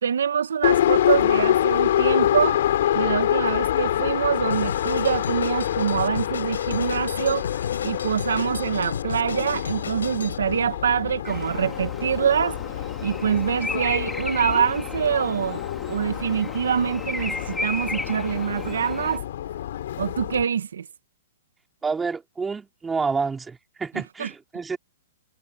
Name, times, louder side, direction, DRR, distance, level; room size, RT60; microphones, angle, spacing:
voice 1, 0.0-2.6 2.9-7.5 7.8-12.6 13.0-15.6 15.9-19.2 20.0-20.9 24.2-24.3, right 8 dB, 80° right, 1.4 m, -25 dB
Subway metro underground, 0.6-20.4, left 12 dB, 65° left, 4.1 m, -26 dB
Drum kit, 4.5-10.4, left 6 dB, 85° left, 6.6 m, -35 dB
Bird vocalization bird call bird song, 11.2-19.2, left 2 dB, 5° left, 3.9 m, -35 dB
voice 2, 21.8-24.8, right 4 dB, 10° right, 4.1 m, -28 dB
hypercardioid pair, 130°, 0 cm